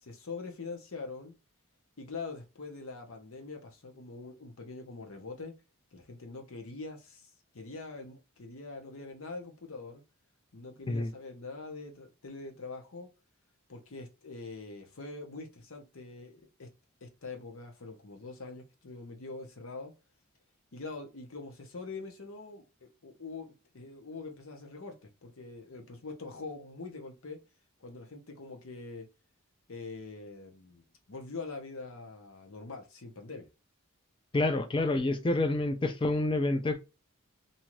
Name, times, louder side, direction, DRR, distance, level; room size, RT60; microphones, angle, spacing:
voice 1, 0.0-1.3 2.0-5.5 5.9-10.0 10.5-13.1 13.7-16.7 17.0-19.9 20.7-27.4 27.8-29.1 29.7-33.5, left 3 dB, 70° left, 0.8 m, -44 dB
voice 2, 34.3-36.8, left 2 dB, 25° left, 0.3 m, -28 dB
2.7 x 2.4 x 2.9 m
head